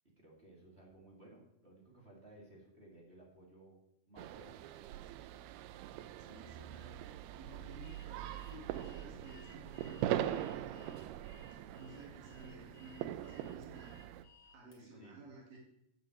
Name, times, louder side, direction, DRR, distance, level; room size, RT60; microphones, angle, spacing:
voice 1, 0.2-3.8 4.1-4.6 14.4-15.2, right 1 dB, 20° right, -3 dB, 2.0 m, -58 dB
sound 1, 4.2-14.2, right 12 dB, 85° right, 2.5 m, -42 dB
voice 2, 6.2-7.0 7.4-11.1 11.7-14.0 14.5-15.6, right 2 dB, 65° right, -2 dB, 3.5 m, -54 dB
Alarm, 7.8-14.8, left 5 dB, 60° left, 3.6 m, -63 dB
9.1 x 7.9 x 7.9 m, 0.80 s
omnidirectional pair, 4.6 m